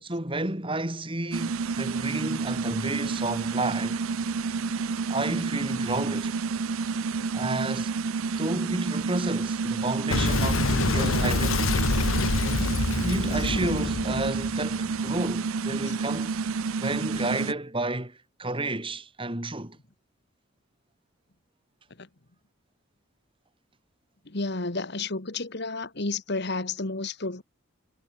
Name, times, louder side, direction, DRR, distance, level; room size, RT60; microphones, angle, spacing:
voice 1, 0.0-4.0 5.1-6.3 7.3-7.9 8.3-12.0 13.0-16.3 16.8-19.8, right 2 dB, 25° right, 2.9 m, -31 dB
sound 1, 1.3-17.5, right 4 dB, 85° right, 0.6 m, -29 dB
Boom, 10.1-15.3, left 3 dB, 75° left, 1.2 m, -26 dB
voice 2, 12.4-12.7 22.0-22.1 24.2-27.4, left 3 dB, 50° left, 1.6 m, -32 dB
head